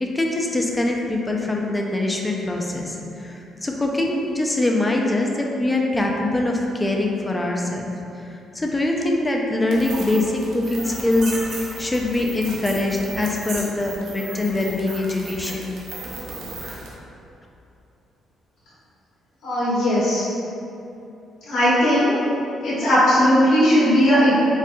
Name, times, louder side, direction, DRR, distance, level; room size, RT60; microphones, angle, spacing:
voice 1, 0.0-7.9 8.3-11.3 11.8-15.7, left 2 dB, 20° left, 0 dB, 0.4 m, -23 dB
sound 1, 9.7-16.9, right 2 dB, 80° right, 0.6 m, -35 dB
voice 2, 19.4-20.2 21.5-22.1 22.6-24.3, equal, 75° left, -11 dB, 1.1 m, -17 dB
4.2 x 2.4 x 2.2 m, 2.8 s
cardioid pair, 90°, 0 cm